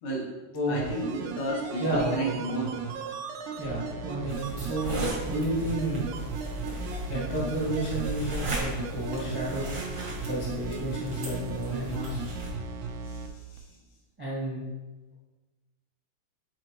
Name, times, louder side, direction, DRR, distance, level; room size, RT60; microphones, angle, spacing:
voice 1, 0.0-0.4 0.7-2.7 13.1-13.6, right 1 dB, 80° left, -2 dB, 2.6 m, -33 dB
sound 1, 0.7-13.3 13.6-13.7, right 5 dB, 90° right, 2.1 m, -36 dB
voice 2, 1.8-2.4 3.6-5.0 5.2-6.0 7.1-9.7 10.2-12.2 14.2-14.6, right 1 dB, 25° right, -6 dB, 0.5 m, -31 dB
sound 2, 4.3-12.5, right 1 dB, 50° right, 0.9 m, -37 dB
7.6 x 4.3 x 3.1 m, 1.2 s
omnidirectional pair, 3.4 m